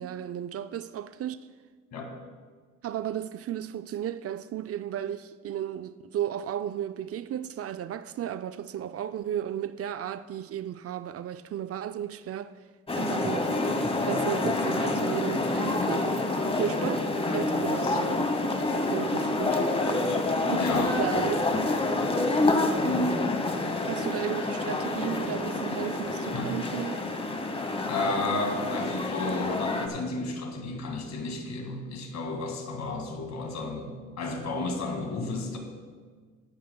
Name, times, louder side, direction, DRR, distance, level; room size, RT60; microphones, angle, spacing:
voice 1, 0.0-1.5 2.8-12.5 12.9-13.6 14.0-16.1 16.5-18.3 18.7-19.7 20.5-21.5 23.9-27.1, right 10 dB, 50° right, 0.4 m, -34 dB
sound 1, 12.9-29.9, left 2 dB, 20° left, 1.1 m, -28 dB
voice 2, 20.6-21.0 22.8-23.3 26.3-26.5 27.9-35.6, left 2 dB, 60° left, 2.0 m, -32 dB
16.0 x 12.0 x 2.2 m
cardioid pair, 90°, 30 cm